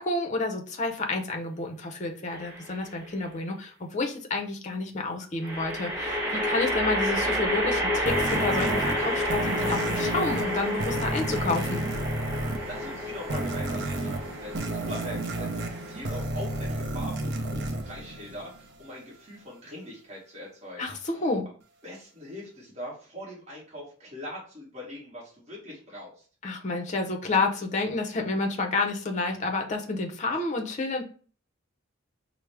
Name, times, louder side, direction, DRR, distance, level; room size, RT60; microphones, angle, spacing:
voice 1, 0.0-11.8 20.8-21.5 26.4-31.0, left 3 dB, 35° left, 3 dB, 0.6 m, -30 dB
sound 1, 2.3-2.9 5.4-16.8, left 1 dB, 10° right, 0.9 m, -30 dB
sound 2, 8.1-18.8, right 2 dB, 55° right, 0.5 m, -32 dB
voice 2, 12.7-20.9 21.8-26.3, left 1 dB, 35° right, -6 dB, 1.1 m, -41 dB
4.6 x 2.0 x 3.3 m, 0.41 s
head